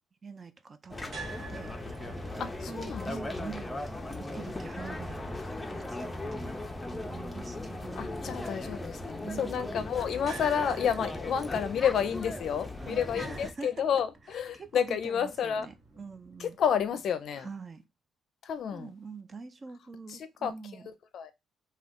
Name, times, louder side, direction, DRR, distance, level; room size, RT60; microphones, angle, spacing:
voice 1, 0.2-2.0 2.3-3.8 4.2-5.4 5.7-6.5 6.9-8.5 9.2-9.6 12.8-13.9 14.3-16.6 17.4-17.8 18.7-20.9, right 4 dB, 35° right, 0.4 m, -45 dB
sound 1, 0.9-13.5, left 2 dB, 15° left, 0.5 m, -38 dB
sound 2, 1.1-17.2, right 3 dB, 55° right, 1.0 m, -52 dB
voice 2, 2.4-3.1 8.0-15.7 16.4-17.5 18.4-18.9 20.1-20.5 21.1-21.3, left 8 dB, 65° left, 0.4 m, -30 dB
2.4 x 2.2 x 3.4 m
cardioid pair, 80°, 0 cm